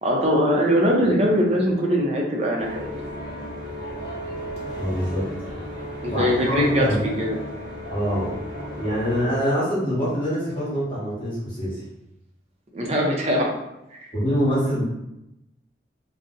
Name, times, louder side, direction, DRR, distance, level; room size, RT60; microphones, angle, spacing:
voice 1, 0.0-2.9 6.0-6.9 7.2-7.4 12.7-13.5 13.9-14.1, equal, 35° right, -1 dB, 0.5 m, -21 dB
sound 1, 2.6-9.2, equal, 75° left, 1.0 m, -34 dB
voice 2, 4.8-5.3 6.0-7.0 7.9-8.4 8.8-11.8 14.1-14.8, equal, 30° left, -8 dB, 1.1 m, -24 dB
2.6 x 2.0 x 3.7 m, 0.90 s
head